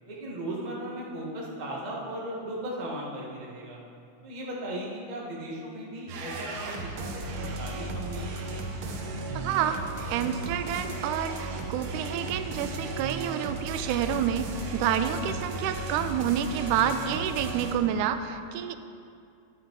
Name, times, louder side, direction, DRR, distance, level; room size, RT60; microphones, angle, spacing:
voice 1, 0.1-3.8 4.2-8.3, right 1 dB, 20° right, -5 dB, 1.1 m, -37 dB
sound 1, 6.1-17.7, right 2 dB, 65° right, 1.3 m, -35 dB
voice 2, 9.3-9.8 10.1-18.8, right 9 dB, 90° right, 10 dB, 2.0 m, -28 dB
11.0 x 8.3 x 4.6 m, 2.4 s
omnidirectional pair, 3.4 m